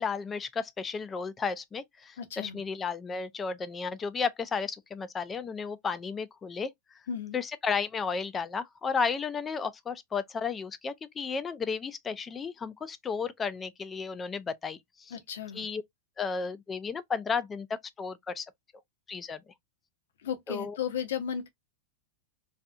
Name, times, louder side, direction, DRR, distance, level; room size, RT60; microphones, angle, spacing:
voice 1, 0.0-6.7 7.3-15.1 15.5-15.8 16.2-18.5 19.1-19.4 20.5-20.8, left 5 dB, 20° left, 0.3 m, -33 dB
voice 2, 2.2-2.6 7.1-7.4 15.1-15.7 20.2-21.5, left 8 dB, 80° left, 0.6 m, -35 dB
2.7 x 2.4 x 2.3 m
hypercardioid pair, 115°, 0 cm